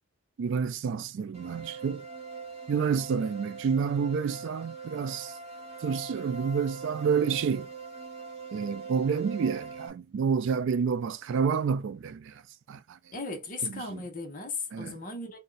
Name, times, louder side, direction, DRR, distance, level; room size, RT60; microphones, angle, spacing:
voice 1, 0.4-2.1 2.7-5.4 5.8-7.7 8.5-12.4 12.7-13.0 13.6-14.0 14.7-15.0, right 6 dB, 55° right, 0.3 m, -29 dB
sound 1, 1.3-9.9, right 4 dB, 30° right, 0.8 m, -42 dB
voice 2, 13.1-15.4, left 3 dB, 40° left, 0.8 m, -36 dB
2.6 x 2.2 x 3.8 m
head